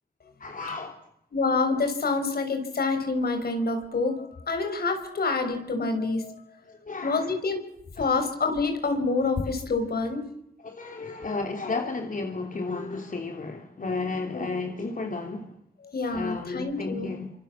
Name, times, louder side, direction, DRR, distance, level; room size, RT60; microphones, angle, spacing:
voice 1, 0.4-1.0 6.6-7.4 8.0-8.3 10.6-15.6 16.1-17.3, left 3 dB, 60° left, 3.3 m, -33 dB
voice 2, 1.3-4.2 4.5-6.4 7.0-7.6 8.0-10.2 15.9-17.1, left 3 dB, 80° left, 5.9 m, -27 dB
26.5 x 26.0 x 7.5 m
cardioid pair, 50°, 16 cm